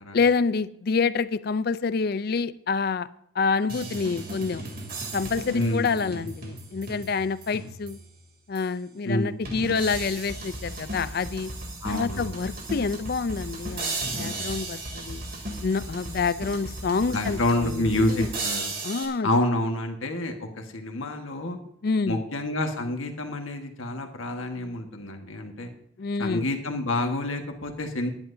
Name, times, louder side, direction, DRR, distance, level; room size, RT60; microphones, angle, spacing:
voice 1, 0.1-3.1 3.4-4.6 5.1-8.0 8.5-11.5 11.9-15.2 15.6-18.3 18.8-19.3 21.8-22.2 26.0-26.5, left 5 dB, 50° left, 15 dB, 0.4 m, -27 dB
sound 1, 3.7-8.1 8.6-8.7 9.5-19.1, right 2 dB, 45° right, 2.8 m, -35 dB
voice 2, 5.5-6.2 9.0-9.4 11.8-12.3 17.1-18.7 19.2-21.6 22.1-25.7 26.2-28.1, left 1 dB, 85° left, 4 dB, 1.5 m, -28 dB
19.0 x 10.5 x 2.7 m, 0.71 s
head